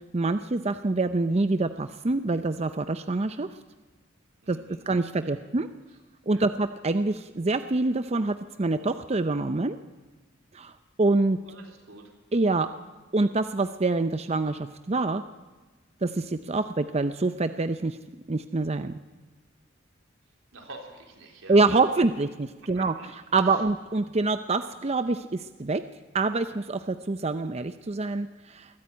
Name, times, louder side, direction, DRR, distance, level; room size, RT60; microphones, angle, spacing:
voice 1, 0.1-3.5 4.5-4.6 4.9-5.7 6.3-9.8 10.5-10.7 11.0-11.4 12.3-12.7 13.1-15.2 16.0-18.0 18.3-19.0 21.5-25.8 26.1-28.7, right 3 dB, 30° right, 10 dB, 0.6 m, -26 dB
voice 2, 4.4-4.8 5.2-5.5 6.3-6.5 11.4-12.1 20.5-21.6 22.7-23.1 23.4-23.6, right 2 dB, 90° right, 2 dB, 3.7 m, -47 dB
21.5 x 14.0 x 8.8 m, 1.3 s
head